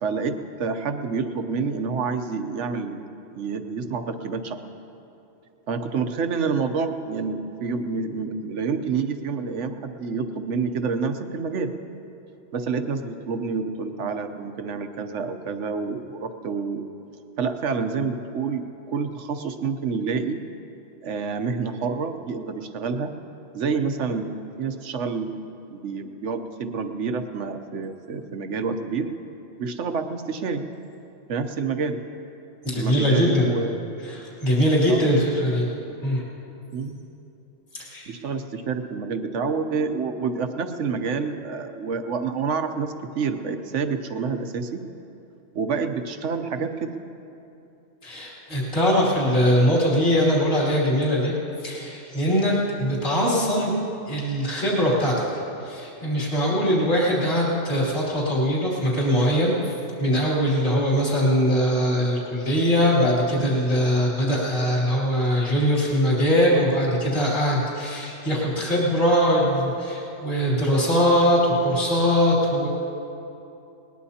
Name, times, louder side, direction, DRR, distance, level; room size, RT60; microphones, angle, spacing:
voice 1, 0.0-4.6 5.7-11.7 12.5-16.8 17.4-20.4 21.0-23.1 23.5-25.3 25.7-29.1 29.6-30.6 31.3-32.0 32.7-33.8 34.9-35.1 36.7-37.0 38.1-44.9 45.5-46.9, right 5 dB, 75° right, 8 dB, 1.2 m, -28 dB
voice 2, 32.6-33.5 34.1-35.7 36.0-36.2 37.8-38.1 48.0-51.3 51.6-53.7 54.1-55.3 55.6-59.5 60.0-72.7, equal, 40° left, -6 dB, 3.0 m, -21 dB
20.5 x 19.5 x 2.8 m, 2.8 s
omnidirectional pair, 1.3 m